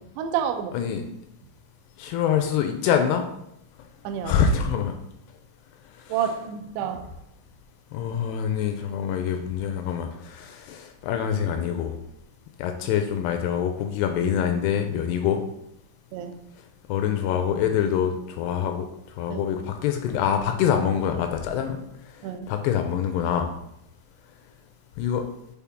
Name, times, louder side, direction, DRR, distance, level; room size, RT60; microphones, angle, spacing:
voice 1, 0.2-0.7 4.0-4.4 6.1-7.1 16.1-16.4 19.3-19.4 22.2-22.5, right 8 dB, 85° right, 6 dB, 2.5 m, -29 dB
voice 2, 0.7-1.1 2.0-3.3 4.2-4.9 6.1-6.2 7.9-12.0 12.6-15.4 16.9-18.9 19.2-21.8 22.5-23.5 25.0-25.3, left 8 dB, 85° left, 5 dB, 2.3 m, -25 dB
7.1 x 4.3 x 3.5 m, 0.80 s
omnidirectional pair, 5.2 m